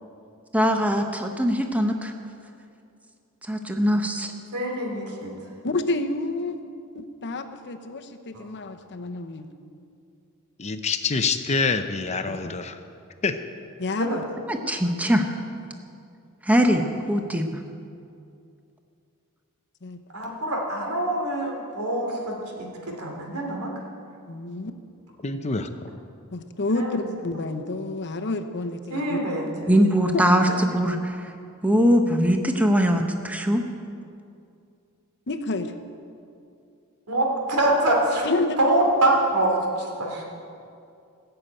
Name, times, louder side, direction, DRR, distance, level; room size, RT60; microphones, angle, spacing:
voice 1, 0.5-2.1 3.5-4.3 14.5-15.2 16.4-17.6 29.7-31.3 31.6-33.6, equal, 5° right, 4 dB, 0.8 m, -21 dB
voice 2, 4.5-5.3 14.0-14.2 20.1-23.7 26.7-27.0 28.9-29.7 37.1-38.3 38.6-40.2, right 1 dB, 80° right, 0 dB, 3.0 m, -25 dB
voice 3, 5.6-6.6 6.9-9.5 12.3-12.4 13.8-14.2 19.8-20.0 24.3-24.7 26.3-29.2 35.3-35.7 38.2-38.6, left 2 dB, 55° left, 7 dB, 0.9 m, -29 dB
voice 4, 10.6-12.8 13.2-13.4 25.2-25.7, left 4 dB, 30° left, 8 dB, 0.6 m, -26 dB
17.0 x 6.9 x 8.9 m, 2.5 s
head